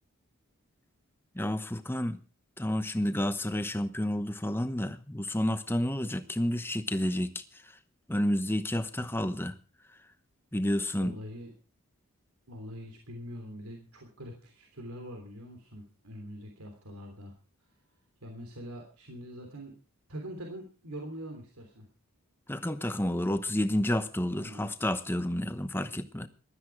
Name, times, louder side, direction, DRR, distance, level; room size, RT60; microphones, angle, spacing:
voice 1, 1.3-2.2 2.6-7.4 8.1-9.5 10.5-11.2 22.5-26.3, left 1 dB, 10° left, 0.9 m, -30 dB
voice 2, 11.0-11.5 12.5-17.3 18.2-19.7 20.1-21.9 24.3-24.7, equal, 80° right, 3.2 m, -43 dB
16.0 x 13.0 x 4.7 m
head